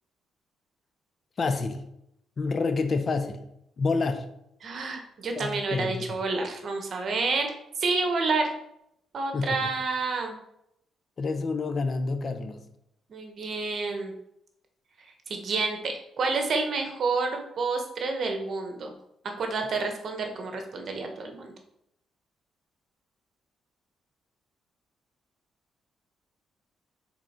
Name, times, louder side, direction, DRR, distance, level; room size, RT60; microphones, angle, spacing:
voice 1, 1.4-1.8 2.4-3.4 3.8-4.3 5.4-6.1 9.3-9.7 11.2-12.7, left 4 dB, 45° left, 8 dB, 0.7 m, -28 dB
voice 2, 4.6-8.5 9.1-10.3 13.1-14.1 15.3-18.9 19.4-21.5, right 3 dB, 55° right, 4 dB, 1.3 m, -29 dB
6.1 x 3.9 x 4.4 m, 0.78 s
cardioid pair, 90°, 0 cm